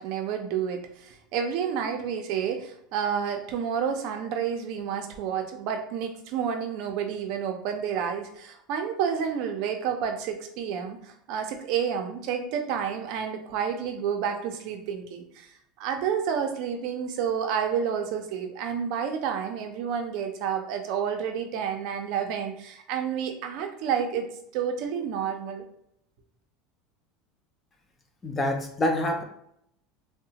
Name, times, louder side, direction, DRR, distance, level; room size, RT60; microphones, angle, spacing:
voice 1, 0.0-15.5 15.8-25.6, right 7 dB, 60° right, 5 dB, 0.4 m, -30 dB
voice 2, 28.2-29.2, left 1 dB, 20° left, 4 dB, 0.4 m, -26 dB
2.7 x 2.0 x 2.7 m, 0.74 s
supercardioid pair, 140°, 0 cm